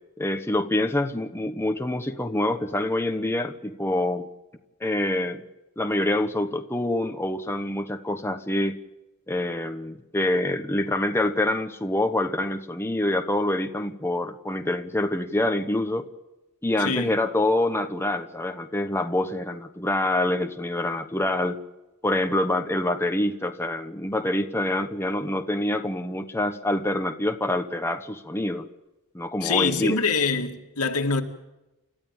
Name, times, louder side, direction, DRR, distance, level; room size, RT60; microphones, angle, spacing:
voice 1, 0.2-4.3 4.8-5.4 5.8-8.8 9.3-16.1 16.6-21.6 22.0-28.7 29.1-30.0, left 1 dB, 10° left, 1.1 m, -26 dB
voice 2, 16.8-17.1 29.4-31.2, left 4 dB, 80° left, 2.3 m, -25 dB
30.0 x 13.5 x 9.0 m
head